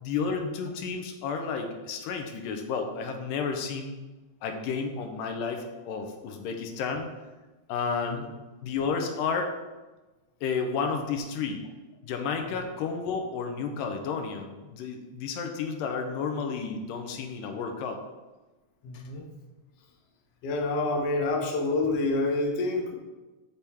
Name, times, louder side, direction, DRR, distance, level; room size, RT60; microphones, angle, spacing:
voice 1, 0.0-4.0 4.4-7.1 7.7-8.3 8.6-9.5 10.4-11.6 12.0-18.0 18.9-19.0, left 5 dB, 85° left, 5 dB, 2.3 m, -31 dB
voice 2, 18.8-19.2 20.4-23.0, left 2 dB, 65° left, 1 dB, 1.5 m, -27 dB
8.3 x 3.4 x 4.2 m, 1.2 s
omnidirectional pair, 3.9 m